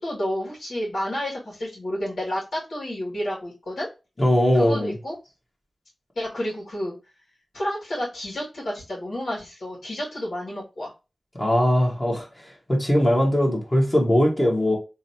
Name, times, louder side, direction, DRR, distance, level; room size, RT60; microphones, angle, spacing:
voice 1, 0.0-3.9 4.5-5.1 6.2-7.0 7.5-10.9, equal, 75° left, 2.4 m, -30 dB
voice 2, 4.2-4.9 11.4-12.3 12.7-14.8, equal, 25° left, 1.7 m, -20 dB
3.8 x 3.3 x 2.9 m
cardioid pair, 50°, 0 cm